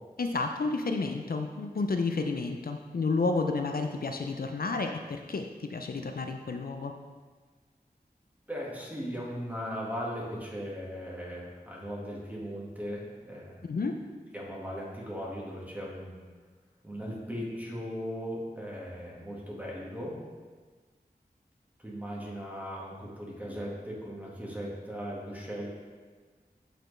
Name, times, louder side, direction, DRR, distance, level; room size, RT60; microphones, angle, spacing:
voice 1, 0.2-6.9 13.6-14.0, left 3 dB, 65° left, 5 dB, 0.4 m, -31 dB
voice 2, 8.5-13.6 14.3-16.2 16.8-20.2 21.8-25.7, equal, 10° right, -4 dB, 1.7 m, -38 dB
7.9 x 4.4 x 3.2 m, 1.4 s
wide cardioid pair, 45°, 16 cm